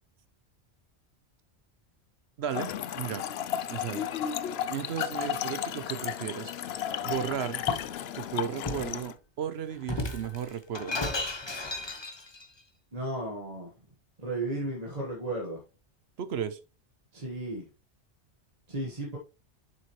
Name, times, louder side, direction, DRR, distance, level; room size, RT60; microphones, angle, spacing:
voice 1, 2.4-3.2 3.7-4.1 4.7-7.6 8.1-11.0 16.2-16.6, right 8 dB, 70° right, 0.9 m, -35 dB
Trickle dribble / Fill (with liquid), 2.5-9.1, left 10 dB, 70° left, 0.8 m, -33 dB
Shatter, 7.1-7.9 8.7-9.0 9.8-12.5, left 2 dB, 25° left, 0.9 m, -35 dB
voice 2, 12.9-13.7 14.2-15.6 17.1-17.7 18.7-19.2, right 2 dB, 35° right, 1.5 m, -34 dB
7.0 x 6.1 x 3.1 m
omnidirectional pair, 1.1 m